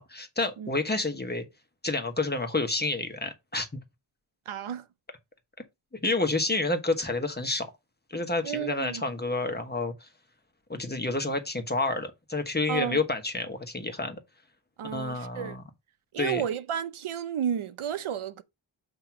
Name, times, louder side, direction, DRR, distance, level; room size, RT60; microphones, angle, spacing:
voice 1, 0.0-1.4 1.8-3.8 6.0-7.7 8.1-10.1 10.7-14.2 14.9-15.6 16.2-16.4, left 2 dB, 20° left, 1.2 m, -29 dB
voice 2, 4.5-4.8 8.4-9.0 12.7-13.0 14.8-15.6 16.1-18.4, right 9 dB, 80° right, 0.7 m, -32 dB
7.6 x 2.9 x 5.8 m
wide cardioid pair, 130°, 49 cm